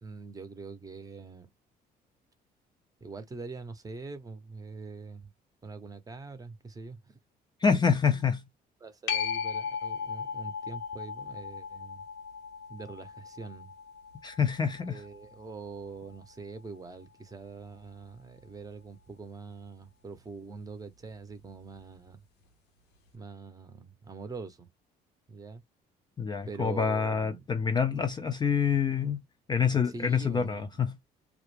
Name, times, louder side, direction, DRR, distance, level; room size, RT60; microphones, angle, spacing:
voice 1, 0.0-1.5 3.0-5.3 5.6-7.1 8.0-8.3 8.8-12.0 12.7-13.7 14.9-22.2 23.1-24.7 25.3-25.6 26.5-27.5 29.7-30.7, right 4 dB, 20° right, 0.6 m, -44 dB
voice 2, 7.6-8.4 14.2-15.0 26.2-29.2 29.5-31.0, left 6 dB, 25° left, 0.4 m, -27 dB
sound 1, 9.1-16.2 21.8-21.9, left 7 dB, 90° left, 0.7 m, -37 dB
2.3 x 2.1 x 3.1 m
cardioid pair, 110°, 17 cm